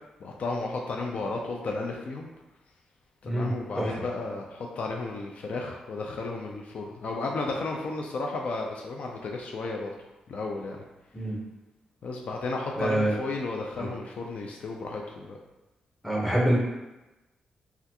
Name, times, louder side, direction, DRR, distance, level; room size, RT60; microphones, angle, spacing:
voice 1, 0.2-2.3 3.2-9.9 10.3-10.8 12.0-15.4, left 3 dB, 65° left, 0 dB, 0.4 m, -33 dB
voice 2, 3.2-3.9 11.1-11.4 12.8-13.2 13.8-13.9 16.0-16.6, right 1 dB, 5° left, -4 dB, 1.0 m, -26 dB
3.3 x 2.4 x 2.8 m, 1.0 s
cardioid pair, 80°, 2 cm